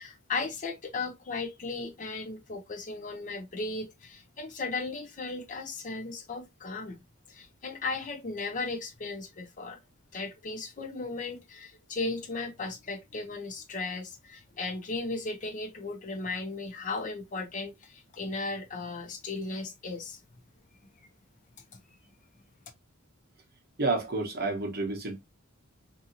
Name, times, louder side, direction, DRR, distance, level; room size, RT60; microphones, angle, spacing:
voice 1, 0.0-7.0 7.3-9.8 10.1-20.2 21.7-21.8, left 3 dB, 35° left, 0.5 m, -36 dB
voice 2, 23.8-25.2, right 3 dB, 45° right, 0.9 m, -29 dB
2.7 x 2.7 x 2.6 m
head